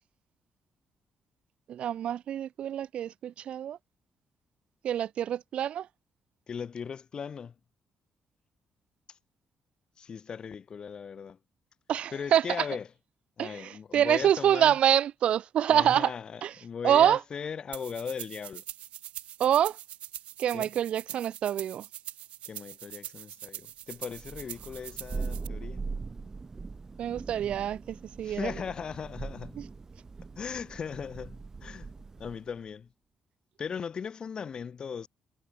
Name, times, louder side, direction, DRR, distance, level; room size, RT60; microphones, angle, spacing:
voice 1, 1.7-3.8 4.8-5.9 11.9-12.6 13.4-16.1 16.4-16.5 16.8-17.2 19.4-19.8 20.4-21.8 27.0-28.5, right 10 dB, 70° right, 0.8 m, -26 dB
voice 2, 6.5-7.5 9.1-9.2 10.0-11.4 12.1-12.9 13.4-14.8 15.7-18.6 20.5-20.7 22.5-25.8 28.2-29.6 30.4-31.9 32.2-32.9 33.6-35.1, left 6 dB, 45° left, 1.6 m, -38 dB
sound 1, 17.7-25.5, right 12 dB, 85° right, 5.4 m, -43 dB
Thunder, 24.1-32.5, right 4 dB, 30° right, 3.3 m, -41 dB
cardioid pair, 110°, 2 cm